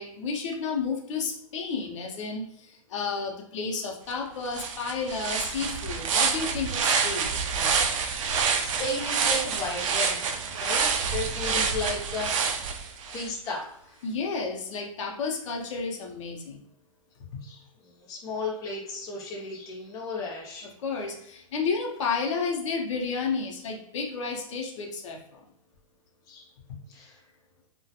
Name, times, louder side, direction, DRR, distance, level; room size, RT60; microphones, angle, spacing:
voice 1, 0.0-7.7 14.0-16.6 20.8-25.2, left 5 dB, 60° left, 0 dB, 0.6 m, -31 dB
sound 1, 4.1-4.2 4.5-13.3, right 6 dB, 60° right, 0.4 m, -27 dB
voice 2, 8.6-10.2 10.5-12.6 13.1-13.9 17.4-20.7 26.3-26.5 26.9-27.2, left 2 dB, 20° left, -3 dB, 0.6 m, -34 dB
2.3 x 2.1 x 2.7 m, 0.72 s
hypercardioid pair, 150°, 18 cm